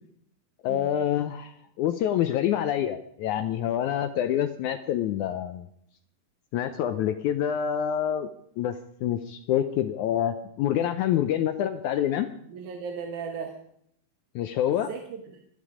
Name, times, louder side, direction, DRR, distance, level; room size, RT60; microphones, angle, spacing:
voice 1, 0.6-5.7 6.5-8.3 8.6-8.8 9.0-12.3 14.4-14.9, left 10 dB, 80° left, 9 dB, 1.8 m, -26 dB
voice 2, 12.5-13.6 14.7-15.4, right 6 dB, 65° right, 3 dB, 2.5 m, -37 dB
26.0 x 10.0 x 5.0 m, 0.71 s
omnidirectional pair, 4.1 m